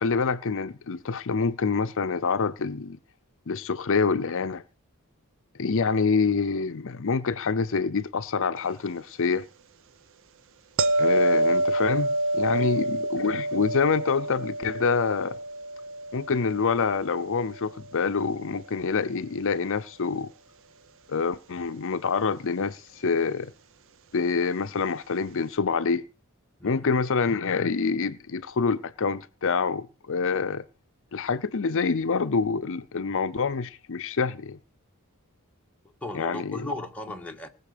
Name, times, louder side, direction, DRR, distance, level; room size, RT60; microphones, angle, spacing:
voice 1, 0.0-3.0 3.5-4.6 5.6-9.5 11.0-15.4 16.1-20.3 21.1-23.5 24.1-26.0 26.6-30.6 31.1-34.6 36.1-36.7, left 5 dB, 65° left, 0.7 m, -26 dB
sound 1, 10.8-17.8 23.0-23.2, right 1 dB, 60° right, 0.9 m, -27 dB
voice 2, 12.5-12.9 26.6-26.9 36.0-37.5, left 1 dB, 5° left, 1.9 m, -37 dB
19.0 x 7.0 x 6.7 m
head